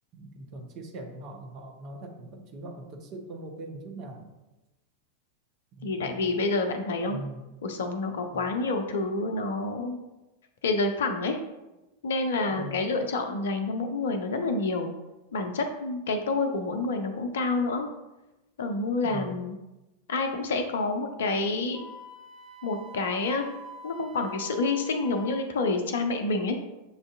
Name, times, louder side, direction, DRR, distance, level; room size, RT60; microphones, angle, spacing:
voice 1, 0.1-4.3 5.8-6.3 6.9-7.4 8.2-8.5 12.5-12.8 19.0-19.4, right 2 dB, 40° right, 2 dB, 0.8 m, -41 dB
voice 2, 5.8-7.2 7.6-10.0 10.6-11.4 12.0-14.9 15.3-17.9 18.6-19.5 20.1-21.9 22.6-23.5 23.8-26.6, left 3 dB, 60° left, 6 dB, 0.5 m, -28 dB
Wind instrument woodwind instrument, 21.7-25.5, right 2 dB, ahead, 0.8 m, -46 dB
7.0 x 2.6 x 2.4 m, 1.0 s
figure-of-eight pair, 90°, 0 cm